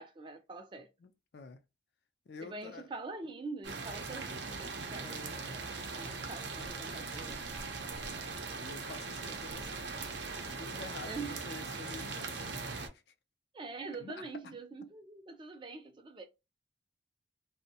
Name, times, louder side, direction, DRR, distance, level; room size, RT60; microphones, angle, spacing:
voice 1, 0.0-0.9 2.4-7.4 11.1-11.5 13.5-16.2, right 3 dB, 25° right, 0.4 m, -45 dB
voice 2, 1.0-1.6 2.3-2.9 8.0-9.9 10.4-13.0 14.0-14.6, left 4 dB, 60° left, 0.4 m, -49 dB
sound 1, 3.6-12.9, right 4 dB, 70° right, 0.6 m, -40 dB
sound 2, 5.5-10.6, equal, 85° left, 0.7 m, -55 dB
2.5 x 2.1 x 2.7 m
head